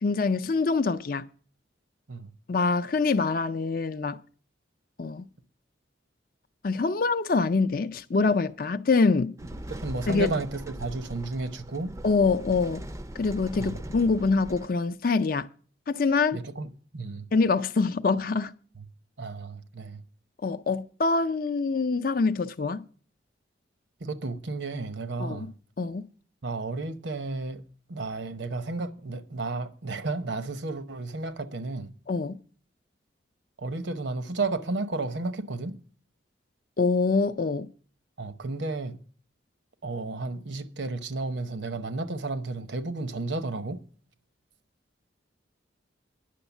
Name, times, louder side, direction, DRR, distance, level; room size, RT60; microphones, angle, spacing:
voice 1, 0.0-1.3 2.5-4.2 5.0-5.3 6.6-9.3 10.1-10.3 12.0-12.8 13.2-15.5 15.9-16.4 17.3-18.5 20.4-22.8 25.2-25.5 25.8-26.0 32.1-32.4 36.8-37.7, left 4 dB, 45° left, 0.5 m, -25 dB
sound 1, 9.4-14.7, right 1 dB, 15° right, 0.5 m, -40 dB
voice 2, 9.7-11.9 13.5-13.8 16.3-17.3 18.7-18.8 19.2-20.0 24.0-25.5 26.4-27.6 27.9-31.9 33.6-35.8 38.2-39.0 39.8-43.8, right 3 dB, 70° right, 0.8 m, -32 dB
10.0 x 6.3 x 7.1 m
head